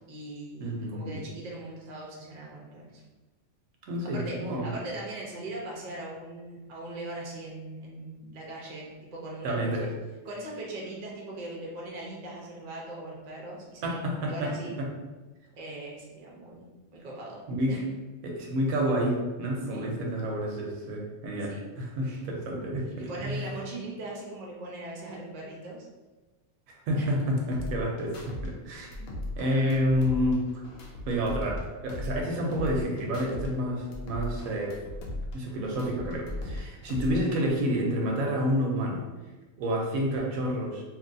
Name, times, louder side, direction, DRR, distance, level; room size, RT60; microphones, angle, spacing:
voice 1, 0.1-3.0 4.1-9.9 10.2-14.0 14.3-14.8 15.5-16.7 16.9-17.4 17.7-17.8 19.7-19.9 21.4-21.6 22.0-22.2 23.0-25.9 27.0-27.1, right 2 dB, 45° right, -3 dB, 0.5 m, -40 dB
voice 2, 0.6-1.2 3.8-4.7 9.4-9.8 13.8-14.5 14.8-14.9 17.5-17.8 18.2-23.4 26.7-29.1 29.4-30.4 31.1-34.8 35.3-39.0 39.6-40.8, equal, 85° right, 0 dB, 1.1 m, -29 dB
sound 1, 27.5-28.5 28.8-31.6 31.9-33.5 33.8-36.6 36.9-37.5, left 1 dB, 80° left, 1.0 m, -37 dB
2.9 x 2.6 x 2.5 m, 1.2 s
omnidirectional pair, 1.4 m